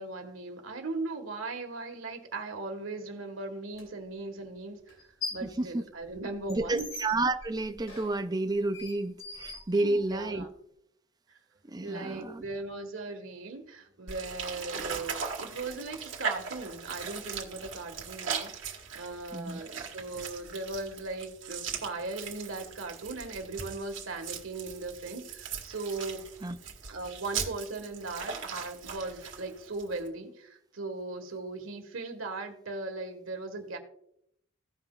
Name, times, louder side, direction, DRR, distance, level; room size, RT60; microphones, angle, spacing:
voice 1, 0.0-5.0 5.3-6.9 9.8-10.5 11.3-11.4 11.8-18.7 18.9-26.2 26.9-33.8, right 3 dB, 90° right, 1.6 m, -38 dB
sound 1, 3.7-3.8 4.9-5.6 5.9-10.3, left 3 dB, 75° left, 2.9 m, -42 dB
voice 2, 5.4-5.8 6.5-10.5 11.6-12.4 19.3-19.6 26.4-26.6, right 2 dB, 20° right, 0.5 m, -30 dB
sound 2, 14.1-30.1, right 6 dB, 70° right, 1.7 m, -39 dB
17.0 x 5.9 x 2.4 m
head